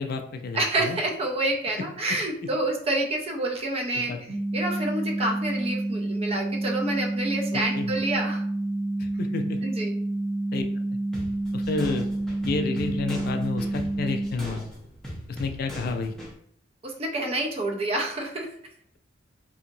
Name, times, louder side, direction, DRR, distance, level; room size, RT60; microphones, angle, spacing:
voice 1, 0.0-1.0 3.9-4.2 7.5-8.0 9.0-9.6 10.5-10.6 11.5-12.1 12.4-14.6 15.3-16.1, left 4 dB, 55° left, 7 dB, 0.3 m, -30 dB
voice 2, 0.5-4.2 4.5-8.4 9.6-9.9 16.8-18.5, right 2 dB, 35° right, 2 dB, 0.5 m, -28 dB
sound 1, 4.3-14.3, right 2 dB, 60° right, 0.8 m, -29 dB
sound 2, 11.1-16.3, equal, ahead, 0.8 m, -40 dB
2.7 x 2.7 x 2.6 m, 0.64 s
head